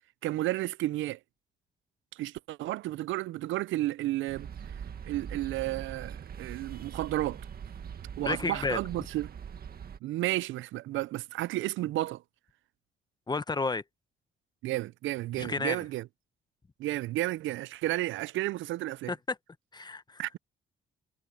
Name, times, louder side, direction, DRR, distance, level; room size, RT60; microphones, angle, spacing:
voice 1, 0.2-1.2 2.1-4.5 5.0-7.4 8.2-9.3 10.0-12.2 14.6-16.0 16.8-19.1 20.2-20.4, right 16 dB, 75° right, 0.4 m, -32 dB
sound 1, 4.3-10.0, right 7 dB, 50° right, 1.7 m, -42 dB
voice 2, 8.2-8.8 13.3-13.8 15.3-15.8 19.1-19.4 19.7-20.2, left 3 dB, 20° left, 0.9 m, -31 dB
cardioid pair, 90°, 20 cm